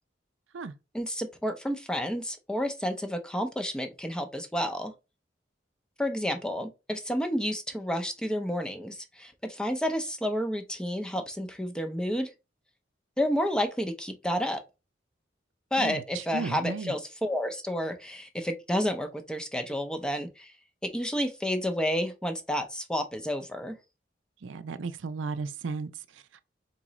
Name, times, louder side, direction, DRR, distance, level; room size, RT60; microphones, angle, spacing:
voice 1, 0.9-4.9 6.0-12.3 13.2-14.6 15.7-20.5 20.8-23.8, equal, 5° left, 0.5 m, -30 dB
voice 2, 15.8-16.9 24.4-26.4, right 4 dB, 90° right, 0.5 m, -35 dB
3.9 x 3.7 x 3.0 m
head